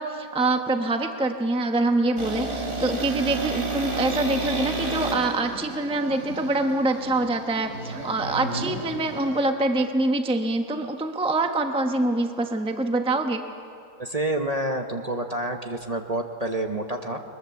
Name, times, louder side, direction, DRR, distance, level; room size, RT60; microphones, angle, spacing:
voice 1, 0.0-13.4, right 2 dB, 5° right, 5 dB, 0.8 m, -25 dB
sound 1, 2.2-9.5, right 2 dB, 60° right, 3.5 m, -31 dB
voice 2, 14.0-17.2, right 1 dB, 30° right, 4 dB, 1.0 m, -28 dB
22.0 x 21.5 x 7.2 m, 2.5 s
omnidirectional pair, 1.6 m